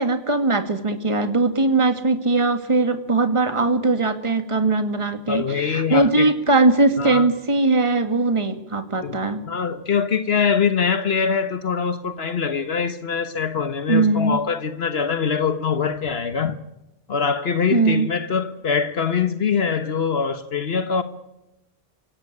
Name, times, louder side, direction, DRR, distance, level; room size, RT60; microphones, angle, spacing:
voice 1, 0.0-9.4 13.9-14.4 17.7-18.1, right 3 dB, 30° right, 2.0 m, -20 dB
voice 2, 5.3-6.3 7.0-7.3 9.0-9.2 9.5-16.6 17.1-21.0, left 6 dB, 70° left, 1.4 m, -23 dB
26.0 x 17.5 x 9.8 m
omnidirectional pair, 1.1 m